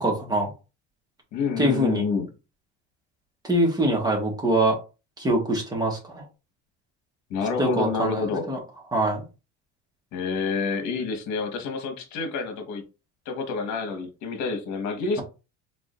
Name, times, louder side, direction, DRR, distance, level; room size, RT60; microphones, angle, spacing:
voice 1, 0.0-0.5 1.6-2.0 3.4-4.8 5.2-6.2 7.6-8.6 8.9-9.2, right 1 dB, 10° right, 1.4 m, -24 dB
voice 2, 1.3-2.3 7.3-8.5 10.1-12.8 13.2-15.2, left 5 dB, 60° left, 1.4 m, -28 dB
4.8 x 3.8 x 2.5 m
cardioid pair, 175°, 32 cm